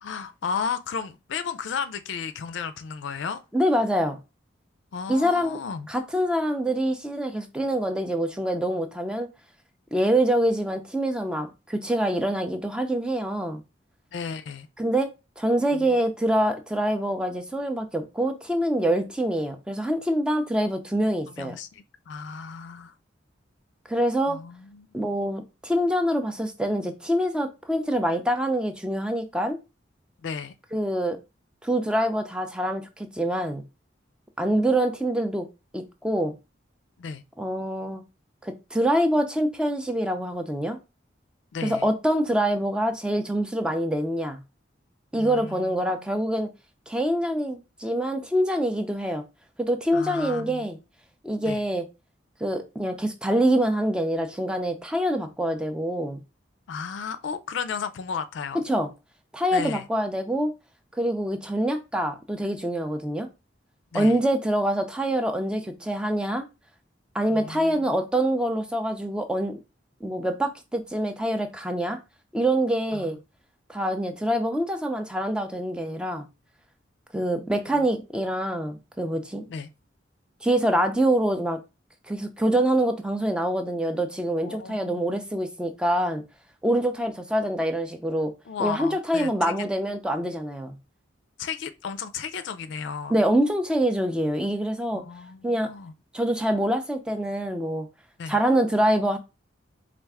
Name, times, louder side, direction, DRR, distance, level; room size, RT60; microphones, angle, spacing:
voice 1, 0.0-3.4 4.9-5.9 14.1-14.7 15.7-16.0 21.4-22.9 24.3-24.9 30.2-30.5 37.0-37.2 41.5-41.9 45.2-46.1 49.9-50.7 51.4-51.6 56.7-58.6 59.5-59.8 63.9-64.2 67.3-68.0 72.9-73.2 77.7-77.8 79.5-79.7 84.4-85.0 88.5-89.6 91.4-93.2 94.9-95.9 98.2-98.4, left 6 dB, 75° left, 0.4 m, -34 dB
voice 2, 3.5-4.2 5.1-5.6 5.9-9.3 9.9-13.6 14.8-15.1 15.4-21.6 23.9-24.4 24.9-29.6 30.7-31.2 31.6-33.6 34.4-35.5 35.7-36.3 37.4-38.0 38.4-40.8 41.6-44.4 45.1-46.5 46.9-49.2 49.6-50.8 51.2-51.9 52.4-56.2 58.7-58.9 59.3-60.5 60.9-63.3 63.9-66.5 67.1-69.6 70.0-72.0 72.3-73.2 73.7-76.2 77.1-79.5 80.4-81.6 82.1-86.2 86.6-88.3 88.6-90.7 93.1-95.0 95.4-95.7 96.1-97.9 98.3-99.2, right 1 dB, 5° right, 0.4 m, -25 dB
4.5 x 2.4 x 3.4 m
head